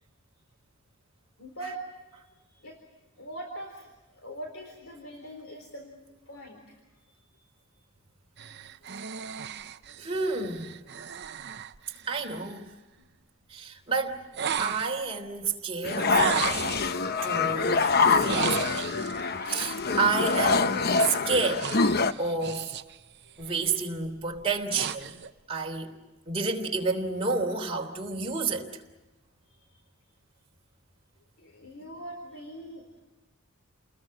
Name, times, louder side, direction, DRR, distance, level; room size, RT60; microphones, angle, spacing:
voice 1, 1.4-1.8 2.2-2.8 3.2-5.9 6.3-6.8 13.0-13.1 23.2-23.4 29.5-29.8 31.4-33.0, right 1 dB, 65° left, 3 dB, 4.1 m, -42 dB
sound 1, 8.4-12.6 14.3-15.1 16.1-16.9 18.1-19.2 20.9-23.0 23.3-23.7 24.3-25.3, right 7 dB, 55° right, 0.8 m, -35 dB
voice 2, 10.0-10.8 12.1-12.7 13.5-14.2 14.6-16.6 17.2-17.8 18.1-18.8 19.4-21.7 22.2-22.7 23.4-25.1 25.5-25.9 26.3-28.7, right 4 dB, 25° right, 1 dB, 3.3 m, -30 dB
sound 2, 15.8-22.1, left 4 dB, 45° left, 0.9 m, -25 dB
30.0 x 21.0 x 7.7 m, 1.1 s
head